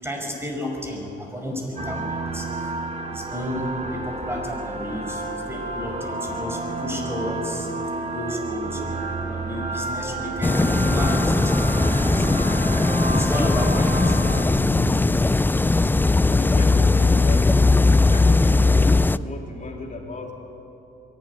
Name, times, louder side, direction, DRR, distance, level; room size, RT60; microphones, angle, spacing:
voice 1, 0.0-2.8 3.1-7.7 8.1-12.3 13.1-14.7, equal, 10° right, 1 dB, 5.5 m, -32 dB
sound 1, 1.8-14.4, right 2 dB, 35° right, 1.8 m, -30 dB
sound 2, 10.4-19.2, left 3 dB, 10° left, 0.4 m, -19 dB
voice 2, 16.3-17.6 18.1-20.3, left 3 dB, 40° left, 0 dB, 3.6 m, -35 dB
23.0 x 12.5 x 9.9 m, 2.9 s
cardioid pair, 90°, 20 cm